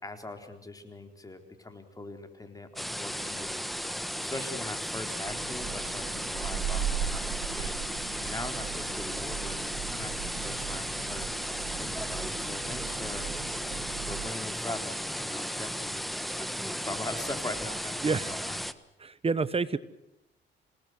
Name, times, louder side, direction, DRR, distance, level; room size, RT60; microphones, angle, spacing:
voice 1, 0.0-11.3 11.8-13.3 13.9-16.0 16.4-18.6, left 2 dB, 15° left, 6 dB, 4.1 m, -42 dB
sound 1, 2.8-18.7, equal, ahead, 1.3 m, -35 dB
sound 2, 5.2-14.3, right 9 dB, 85° right, 2.9 m, -38 dB
voice 2, 19.0-19.8, right 4 dB, 30° right, 16 dB, 1.3 m, -28 dB
27.5 x 19.0 x 7.9 m, 0.90 s
cardioid pair, 90°, 20 cm